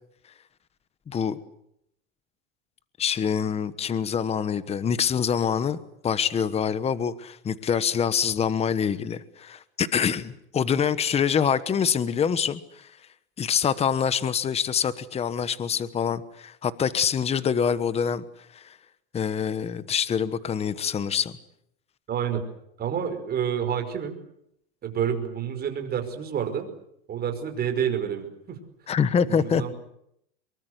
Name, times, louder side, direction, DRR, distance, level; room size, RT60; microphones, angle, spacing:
voice 1, 1.1-1.4 3.0-5.8 6.0-12.9 13.4-18.2 18.5-18.6 19.1-21.3 28.9-29.6, left 7 dB, 20° left, 15 dB, 1.2 m, -25 dB
voice 2, 22.1-22.4 22.8-24.2 24.8-26.7 27.1-28.6 29.3-29.7, right 8 dB, 30° right, 6 dB, 5.3 m, -28 dB
24.5 x 23.0 x 8.1 m, 0.75 s
supercardioid pair, 135°, 33 cm